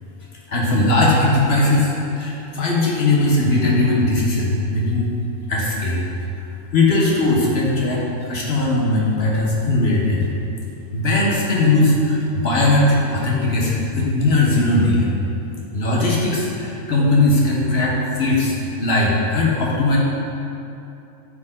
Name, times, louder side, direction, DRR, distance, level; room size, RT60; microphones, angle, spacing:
voice 1, 0.5-5.1 5.5-6.1 6.7-10.3 10.9-15.1 15.7-20.0, left 2 dB, 45° left, -3 dB, 1.1 m, -19 dB
8.3 x 4.6 x 3.7 m, 2.7 s
omnidirectional pair, 1.6 m